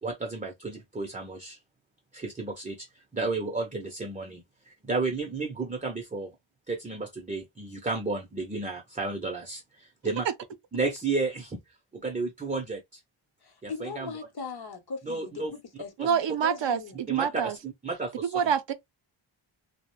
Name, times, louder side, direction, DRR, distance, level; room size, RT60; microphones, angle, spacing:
voice 1, 0.0-1.6 2.1-6.4 6.7-10.3 10.7-11.6 11.9-13.0 13.6-14.1 15.0-15.5 16.0-16.1 17.1-18.3, right 3 dB, 15° right, 0.5 m, -32 dB
voice 2, 13.4-17.0, left 4 dB, 50° left, 0.8 m, -39 dB
voice 3, 16.0-17.6 18.3-18.7, right 8 dB, 65° right, 0.5 m, -27 dB
2.3 x 2.1 x 3.0 m
wide cardioid pair, 90°, 48 cm